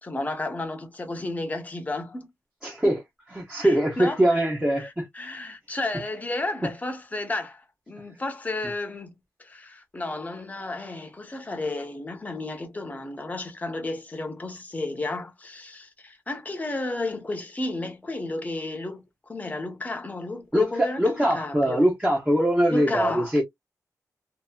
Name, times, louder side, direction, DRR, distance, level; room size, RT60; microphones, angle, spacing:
voice 1, 0.0-2.3 2.8-3.0 3.6-4.4 4.8-9.1 9.4-21.9 22.7-23.4, left 2 dB, 25° left, 0.8 m, -32 dB
voice 2, 2.6-3.0 3.3-5.1 20.5-23.4, equal, 15° right, 0.9 m, -22 dB
2.7 x 2.6 x 2.2 m
wide cardioid pair, 130°, 7 cm